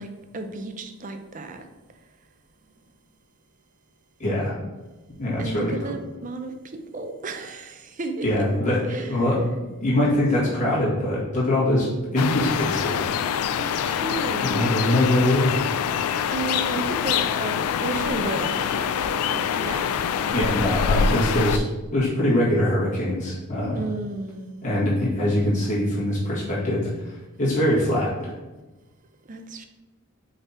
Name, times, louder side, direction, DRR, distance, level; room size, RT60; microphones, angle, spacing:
voice 1, 0.0-1.7 5.4-8.3 8.9-9.1 13.5-15.1 16.3-20.0 20.3-21.2 21.5-21.7 23.7-24.5 29.3-29.6, right 3 dB, 35° right, 7 dB, 0.5 m, -34 dB
voice 2, 4.2-4.6 5.2-5.7 8.2-9.4 9.8-13.0 14.4-15.6 20.3-21.6 21.9-23.8 24.6-28.3, left 1 dB, 35° left, -7 dB, 2.0 m, -23 dB
sound 1, 12.2-21.6, left 7 dB, 90° left, 0.3 m, -25 dB
5.3 x 4.1 x 4.3 m, 1.2 s
head